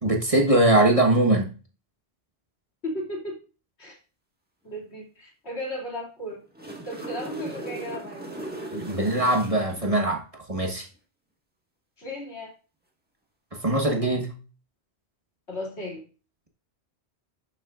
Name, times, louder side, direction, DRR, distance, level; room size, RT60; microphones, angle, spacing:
voice 1, 0.0-1.5 8.7-10.9 13.6-14.3, right 1 dB, 30° right, 2 dB, 1.4 m, -22 dB
voice 2, 2.8-3.4 3.8-4.0 4.6-6.4 6.8-8.2 12.0-12.5 15.5-16.0, left 1 dB, 70° left, -1 dB, 2.9 m, -35 dB
sound 1, 6.3-9.9 13.8-13.9, right 2 dB, 10° right, 1.6 m, -38 dB
11.5 x 7.1 x 2.5 m, 0.35 s
omnidirectional pair, 1.1 m